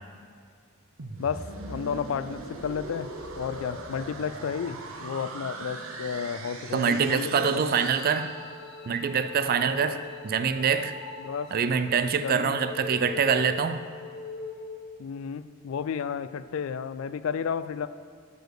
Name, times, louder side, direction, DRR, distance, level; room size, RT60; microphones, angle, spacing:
sound 1, 1.0-8.9, right 2 dB, 85° right, 0.9 m, -40 dB
voice 1, 1.2-7.8 9.8-10.0 11.2-11.5 12.1-12.6 15.0-17.9, left 6 dB, 75° left, 14 dB, 0.3 m, -32 dB
voice 2, 6.7-8.3 8.9-10.0 10.2-11.0 11.5-13.8, right 6 dB, 45° right, 11 dB, 0.4 m, -25 dB
sound 2, 7.9-14.9, left 4 dB, 50° left, 0.9 m, -42 dB
7.9 x 5.1 x 6.6 m, 2.2 s
head